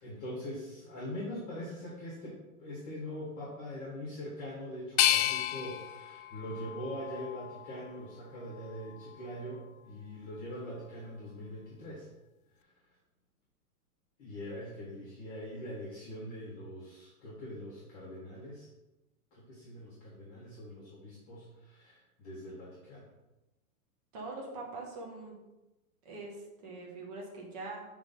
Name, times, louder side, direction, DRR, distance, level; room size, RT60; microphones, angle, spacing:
voice 1, 0.0-12.1 12.6-12.7 14.2-18.7 19.3-23.1, equal, 15° left, -7 dB, 1.2 m, -43 dB
sound 1, 5.0-7.9 8.4-9.3, left 12 dB, 70° left, 0.5 m, -32 dB
voice 2, 24.1-25.4 26.0-27.8, right 3 dB, 25° right, -1 dB, 1.1 m, -43 dB
5.8 x 3.3 x 5.3 m, 1.0 s
supercardioid pair, 180°, 45 cm